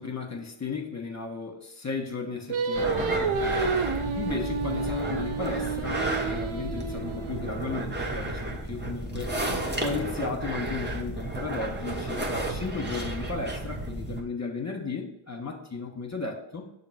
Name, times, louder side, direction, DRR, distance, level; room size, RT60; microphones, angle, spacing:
voice 1, 0.0-3.8 4.2-9.4 9.8-16.7, left 4 dB, 35° left, 3 dB, 1.2 m, -35 dB
Singing, 2.5-7.8, right 4 dB, 80° right, 0.7 m, -30 dB
sound 1, 2.7-14.2, right 2 dB, 20° right, 1.1 m, -32 dB
6.5 x 2.8 x 5.7 m, 0.84 s
cardioid pair, 55°, 49 cm